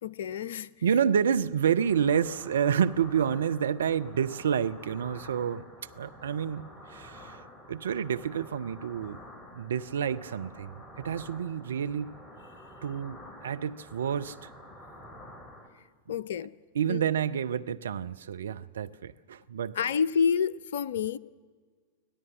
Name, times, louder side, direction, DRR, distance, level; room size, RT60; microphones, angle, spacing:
voice 1, 0.0-0.7 16.1-16.5 16.9-17.0 19.7-21.2, left 6 dB, 60° left, 0.5 m, -28 dB
voice 2, 0.8-5.7 6.0-9.2 9.5-12.1 12.8-14.5 16.8-19.8, right 8 dB, 65° right, 0.6 m, -29 dB
sound 1, 1.8-15.7, left 1 dB, 10° left, 2.9 m, -49 dB
25.0 x 17.0 x 7.5 m
figure-of-eight pair, 90°, 0 cm